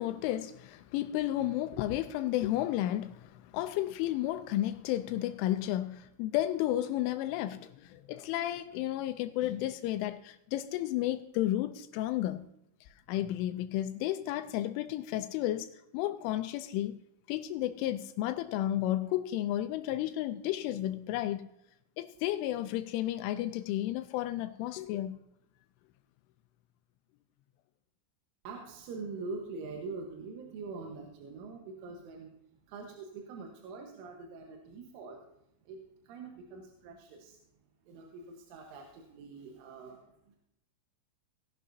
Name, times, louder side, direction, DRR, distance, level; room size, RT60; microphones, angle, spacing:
voice 1, 0.0-12.5 12.8-17.0 17.3-21.5 22.0-25.2, left 13 dB, 85° left, 2.9 m, -32 dB
voice 2, 28.5-32.4 32.7-35.3 35.7-37.4 37.9-40.4, right 4 dB, 75° right, 3.6 m, -44 dB
18.5 x 11.0 x 2.7 m
omnidirectional pair, 5.9 m